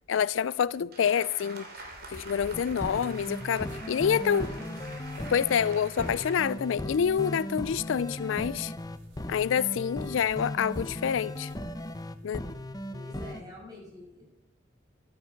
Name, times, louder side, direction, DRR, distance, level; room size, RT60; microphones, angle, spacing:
voice 1, 0.1-1.7 2.1-4.5 5.3-8.7 9.3-11.5 12.2-12.4, left 7 dB, 85° left, 0.4 m, -27 dB
sound 1, 0.9-6.4, right 2 dB, 55° right, 2.7 m, -46 dB
sound 2, 1.7-12.6, right 1 dB, 70° right, 3.1 m, -55 dB
sound 3, 2.5-13.4, left 1 dB, 20° left, 0.7 m, -37 dB
voice 2, 3.7-4.7 12.9-14.3, left 1 dB, 20° right, 6.5 m, -47 dB
13.0 x 12.0 x 5.7 m
head